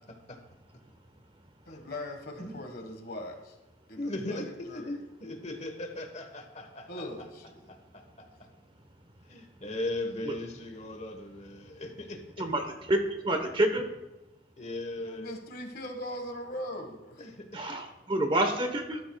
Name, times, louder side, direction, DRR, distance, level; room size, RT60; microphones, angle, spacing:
voice 1, 1.7-3.6 3.9-5.0 6.9-7.6 15.0-17.3, left 1 dB, 55° left, 5 dB, 1.6 m, -40 dB
voice 2, 4.0-7.0 9.2-12.5 14.6-15.3 17.2-17.8 18.2-18.3, left 1 dB, 40° left, 5 dB, 1.2 m, -38 dB
voice 3, 12.4-13.9 17.5-19.0, right 1 dB, 30° right, 6 dB, 1.1 m, -28 dB
13.0 x 12.0 x 2.3 m, 1.0 s
head